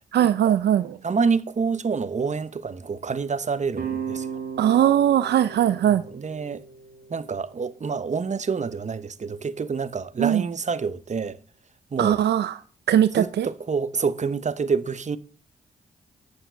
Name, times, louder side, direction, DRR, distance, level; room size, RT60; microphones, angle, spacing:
voice 1, 0.1-0.9 4.6-6.0 10.2-10.4 12.0-12.6 12.9-13.5, right 10 dB, 80° right, 0.5 m, -20 dB
voice 2, 1.0-4.3 5.8-6.6 7.1-11.4 11.9-12.2 13.2-15.2, right 5 dB, 45° right, 0.9 m, -27 dB
sound 1, 3.7-8.9, right 7 dB, 60° right, 1.9 m, -37 dB
9.2 x 7.2 x 7.0 m
supercardioid pair, 50°, 17 cm